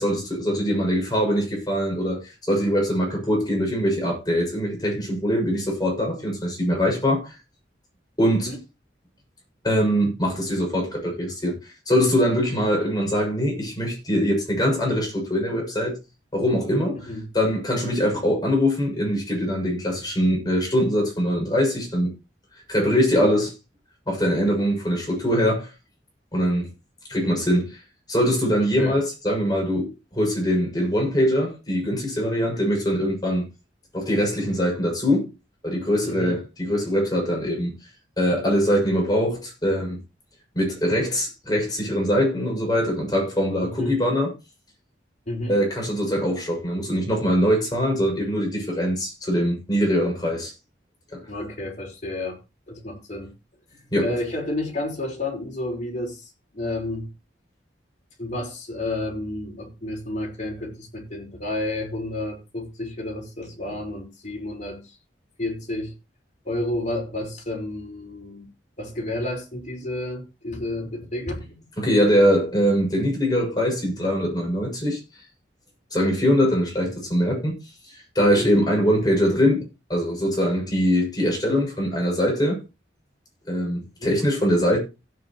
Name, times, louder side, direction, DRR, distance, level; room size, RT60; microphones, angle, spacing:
voice 1, 0.0-7.3 8.2-8.5 9.6-16.0 16.3-22.1 22.7-23.5 24.1-25.7 26.3-26.7 27.1-27.8 28.1-33.4 33.9-35.3 35.6-37.7 38.2-40.0 40.6-44.3 45.5-50.5 51.1-51.2 53.9-54.1 71.8-75.0 75.9-77.5 77.9-82.6 83.5-84.8, equal, 20° left, 6.9 m, -22 dB
voice 2, 28.6-29.0 36.0-36.4 43.6-44.0 45.3-45.6 51.3-52.4 52.7-53.3 54.0-57.1 58.2-64.8 65.4-65.9 66.4-68.4 68.8-71.6 78.2-78.5 84.0-84.1, left 1 dB, 40° left, 5.1 m, -31 dB
16.5 x 8.8 x 3.1 m
head